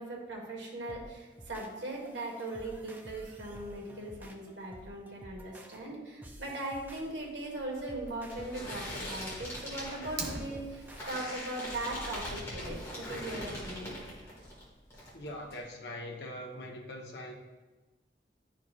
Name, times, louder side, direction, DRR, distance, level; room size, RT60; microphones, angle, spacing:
voice 1, 0.0-13.9, right 1 dB, 85° right, -2 dB, 1.6 m, -39 dB
sound 1, 0.9-11.2, right 1 dB, 10° right, 0.4 m, -52 dB
sound 2, 7.0-14.6 14.9-15.6, left 1 dB, 15° left, 1.7 m, -42 dB
Fire, 10.0-11.0, right 3 dB, 70° right, 1.1 m, -39 dB
voice 2, 15.1-17.3, left 1 dB, 75° left, 0 dB, 1.1 m, -42 dB
10.5 x 4.5 x 2.5 m, 1.2 s
head